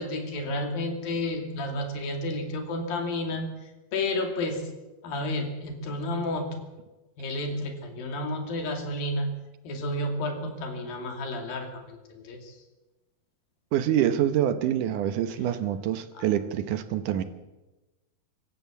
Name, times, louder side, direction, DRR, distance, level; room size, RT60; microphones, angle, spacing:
voice 1, 0.0-3.5 3.9-4.7 5.0-6.6 7.2-9.3 9.6-12.6, left 1 dB, 85° left, 4 dB, 4.4 m, -31 dB
voice 2, 13.7-17.2, right 11 dB, 70° right, 11 dB, 2.4 m, -26 dB
25.5 x 14.5 x 7.1 m, 1.1 s
omnidirectional pair, 4.0 m